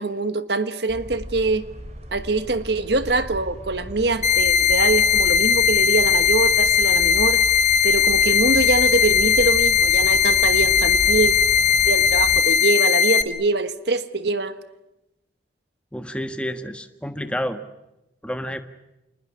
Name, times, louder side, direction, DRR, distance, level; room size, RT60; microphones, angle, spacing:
voice 1, 0.0-1.6 2.1-7.4 7.8-11.3 11.8-14.6, right 3 dB, 65° right, 1.4 m, -24 dB
sound 1, 0.9-12.4, equal, 35° right, 3.0 m, -36 dB
sound 2, 4.2-13.2, left 7 dB, 40° left, 1.6 m, -18 dB
voice 2, 15.9-17.6 18.2-18.6, equal, 5° left, 1.4 m, -29 dB
27.5 x 20.5 x 9.8 m
head